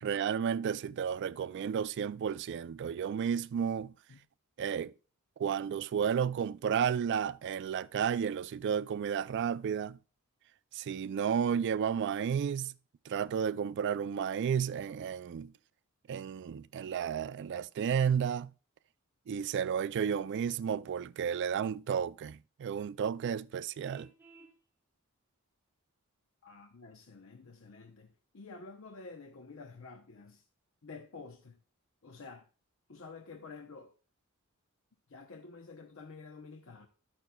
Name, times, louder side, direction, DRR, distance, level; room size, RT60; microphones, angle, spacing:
voice 1, 0.0-3.9 4.6-4.9 5.4-10.0 10.7-12.7 13.1-15.5 16.1-18.5 19.3-24.1, right 7 dB, 55° right, 0.3 m, -32 dB
Vehicle horn car horn honking, 23.8-24.6, right 3 dB, 10° right, 1.2 m, -56 dB
voice 2, 26.4-30.5 30.8-31.6 32.0-32.5 32.9-33.9 35.1-36.9, left 4 dB, 65° left, 0.8 m, -50 dB
11.5 x 8.6 x 2.2 m
head